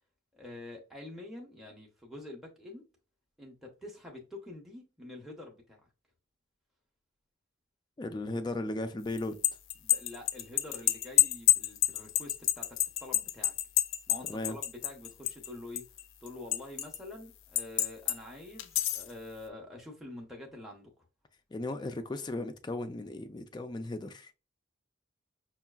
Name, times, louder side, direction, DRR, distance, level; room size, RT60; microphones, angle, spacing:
voice 1, 0.3-2.8 3.4-5.8 9.8-13.5 14.1-15.8 16.2-20.9, left 2 dB, ahead, 0.7 m, -46 dB
voice 2, 8.0-9.4 14.3-14.6 21.5-24.3, left 2 dB, 20° left, 0.3 m, -36 dB
sound 1, 9.2-15.5 15.8-17.0 17.6-18.2 18.6-19.1, left 13 dB, 90° left, 0.4 m, -28 dB
5.5 x 2.3 x 2.3 m
head